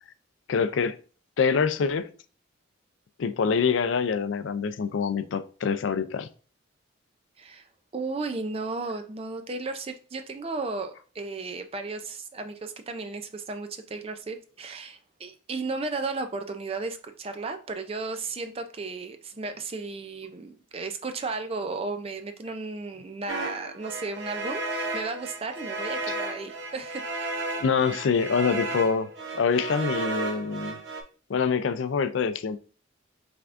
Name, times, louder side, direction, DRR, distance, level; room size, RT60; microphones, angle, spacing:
voice 1, 0.5-1.0 1.4-2.1 3.2-6.3 27.6-30.8 31.3-32.6, left 5 dB, 65° left, 0.4 m, -25 dB
voice 2, 7.9-27.3, right 3 dB, 30° right, 0.4 m, -34 dB
sound 1, 23.3-31.0, right 2 dB, 60° right, 0.8 m, -33 dB
5.9 x 3.5 x 2.5 m
head